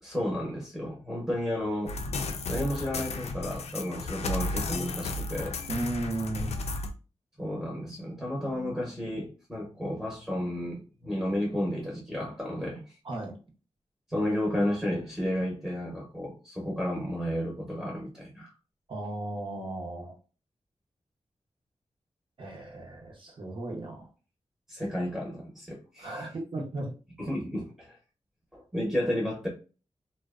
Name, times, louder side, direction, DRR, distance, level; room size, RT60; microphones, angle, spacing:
voice 1, 0.0-2.0 2.5-5.6 7.4-13.0 14.1-18.5 24.7-26.3 27.2-28.0 28.5-29.5, left 1 dB, 5° right, -4 dB, 0.8 m, -32 dB
sound 1, 1.9-6.9, left 2 dB, 70° left, 0.4 m, -33 dB
voice 2, 5.7-6.5 13.0-13.3 18.9-20.1 22.4-24.1 26.0-26.9, right 2 dB, 50° right, 1 dB, 0.7 m, -35 dB
2.5 x 2.1 x 2.4 m, 0.34 s
wide cardioid pair, 95°, 11 cm